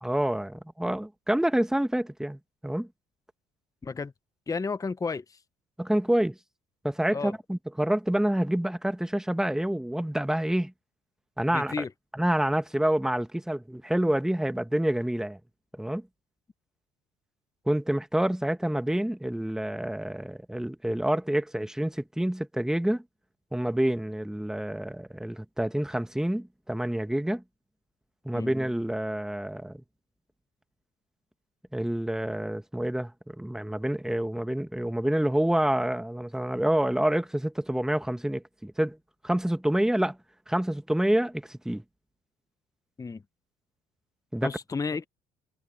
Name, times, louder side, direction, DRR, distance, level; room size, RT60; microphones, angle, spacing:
voice 1, 0.0-2.9 5.8-6.4 6.8-10.7 11.4-11.8 12.1-15.4 15.7-16.0 17.7-23.0 23.5-27.4 28.2-29.8 31.7-39.0 39.2-40.2 40.5-41.8 44.3-44.5, right 1 dB, 5° right, 1.4 m, -27 dB
voice 2, 3.8-4.1 4.5-5.4 7.1-7.3 11.5-11.9 28.3-28.5 43.0-43.2 44.4-45.1, left 4 dB, 20° left, 0.7 m, -32 dB
supercardioid pair, 80°, 18 cm